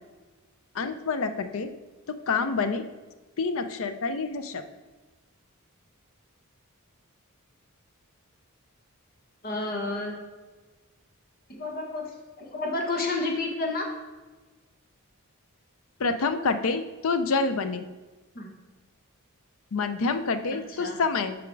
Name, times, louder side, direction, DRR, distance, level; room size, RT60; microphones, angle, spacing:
voice 1, 0.7-1.7 2.1-2.8 3.4-4.6 16.0-17.8 19.7-21.3, left 4 dB, 65° left, 10 dB, 0.6 m, -27 dB
voice 2, 9.4-10.1 11.5-13.9 18.3-18.5 20.5-21.0, left 2 dB, 45° left, 2 dB, 1.3 m, -31 dB
7.0 x 5.0 x 4.6 m, 1.2 s
head